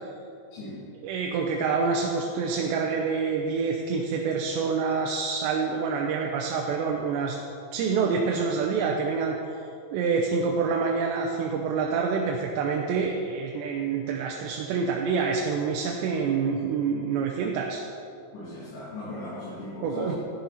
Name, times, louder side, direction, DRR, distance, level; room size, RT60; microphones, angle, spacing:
voice 1, 0.5-0.9 18.3-20.2, left 1 dB, 75° left, -10 dB, 4.9 m, -38 dB
voice 2, 1.0-7.4 7.7-9.6 9.9-17.8 19.8-20.2, right 5 dB, 85° right, 0 dB, 3.0 m, -27 dB
12.0 x 12.0 x 4.2 m, 2.5 s
omnidirectional pair, 5.0 m